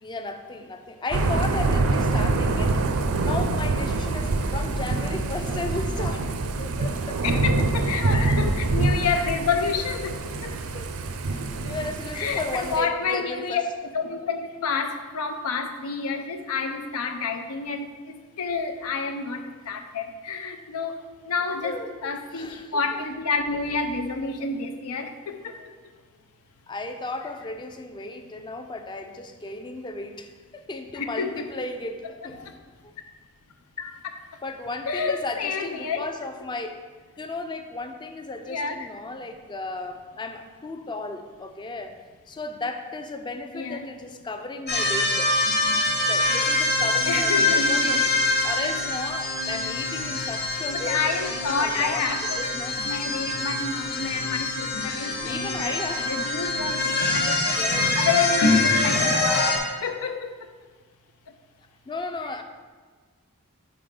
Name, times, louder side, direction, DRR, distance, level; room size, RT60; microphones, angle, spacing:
voice 1, 0.0-2.8 3.2-7.4 8.1-8.4 10.7-10.9 11.3-13.6 21.6-23.0 26.7-32.4 32.8-32.9 34.4-36.8 37.2-42.0 42.3-45.4 45.9-48.0 48.4-52.1 52.4-52.8 55.2-56.1 57.5-58.1 61.9-62.4, left 2 dB, 20° left, 7 dB, 0.4 m, -35 dB
Thunder / Rain, 1.1-12.8, right 3 dB, 70° right, 0.5 m, -25 dB
voice 2, 7.2-10.5 12.1-13.6 13.9-21.8 22.0-25.5 30.9-31.5 32.4-32.5 33.8-34.0 34.9-36.0 38.5-38.9 43.5-43.9 47.1-48.0 50.7-52.4 52.8-55.8 56.1-57.3 57.8-60.3, left 5 dB, 90° left, 6 dB, 0.5 m, -29 dB
sound 1, 44.7-59.6, left 2 dB, 50° left, 0.9 m, -24 dB
5.6 x 4.1 x 5.1 m, 1.5 s
head